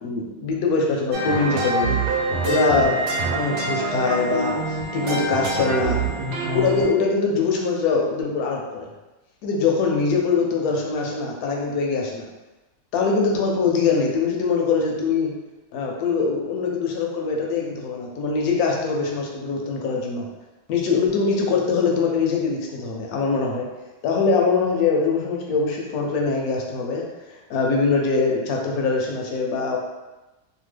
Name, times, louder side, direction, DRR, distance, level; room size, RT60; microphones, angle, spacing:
voice 1, 0.0-2.0 2.4-3.0 3.3-6.0 6.5-8.9 9.4-12.2 12.9-15.3 15.7-20.3 20.7-23.7 24.0-29.8, left 4 dB, 75° left, 0 dB, 1.0 m, -23 dB
sound 1, 1.1-6.9, right 2 dB, 80° right, 1.1 m, -25 dB
2.9 x 2.2 x 3.2 m, 1.1 s
omnidirectional pair, 1.7 m